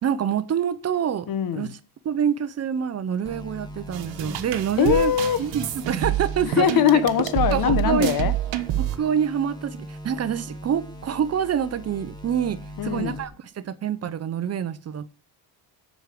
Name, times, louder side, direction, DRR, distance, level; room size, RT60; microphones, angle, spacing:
voice 1, 0.0-1.8 2.0-5.1 5.4-6.7 7.5-8.1 8.8-15.1, right 8 dB, 35° right, 0.7 m, -26 dB
voice 2, 1.3-1.7 4.8-5.4 6.4-8.3 12.8-13.2, left 9 dB, 50° left, 1.0 m, -21 dB
sound 1, 3.2-13.2, equal, 10° left, 1.6 m, -41 dB
sound 2, 3.9-9.0, right 12 dB, 85° right, 1.2 m, -28 dB
8.0 x 6.5 x 8.3 m
cardioid pair, 155°, 43 cm